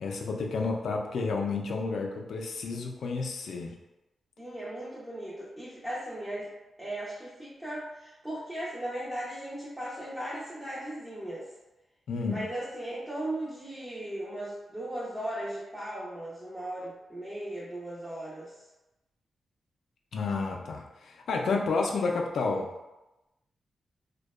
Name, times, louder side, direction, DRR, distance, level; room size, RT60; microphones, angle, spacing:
voice 1, 0.0-3.7 12.1-12.4 20.1-22.7, left 4 dB, 75° left, 1 dB, 0.3 m, -30 dB
voice 2, 4.4-6.5 6.8-11.5 12.3-18.5, right 1 dB, 10° right, -9 dB, 0.5 m, -37 dB
2.6 x 2.2 x 2.3 m, 0.98 s
wide cardioid pair, 120°, 0 cm